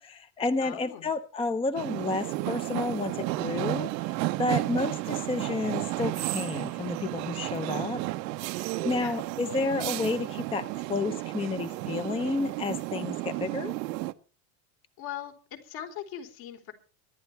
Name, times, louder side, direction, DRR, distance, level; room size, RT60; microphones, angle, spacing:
voice 1, 0.0-3.9 4.4-8.0 8.5-13.7, left 3 dB, 10° left, 12 dB, 0.6 m, -31 dB
voice 2, 0.6-1.1 8.9-9.2 15.0-16.7, left 10 dB, 65° left, 3 dB, 4.3 m, -40 dB
sound 1, 1.8-14.1, right 19 dB, 90° right, 1.0 m, -32 dB
23.5 x 11.0 x 3.4 m, 0.36 s
supercardioid pair, 125°, 49 cm